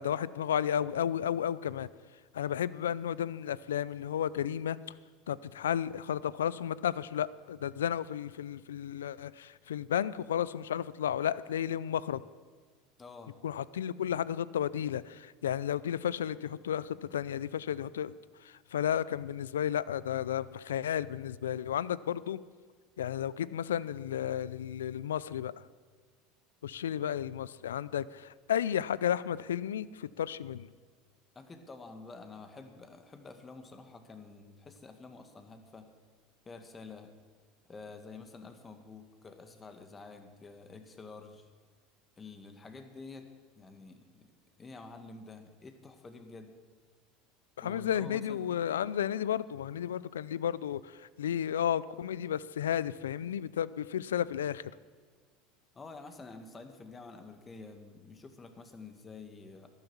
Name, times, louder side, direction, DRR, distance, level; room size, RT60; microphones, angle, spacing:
voice 1, 0.0-1.9 2.3-4.8 5.3-12.2 13.4-18.1 18.4-22.4 23.0-25.5 26.6-30.7 47.6-54.6, left 9 dB, 90° left, 19 dB, 0.4 m, -33 dB
voice 2, 13.0-13.4 31.4-35.9 36.5-37.1 37.7-41.5 42.2-43.3 43.6-44.3 44.6-46.5 47.6-48.4 55.8-59.7, left 3 dB, 25° left, 7 dB, 1.8 m, -49 dB
12.5 x 10.5 x 7.3 m, 1.5 s
hypercardioid pair, 90°, 0 cm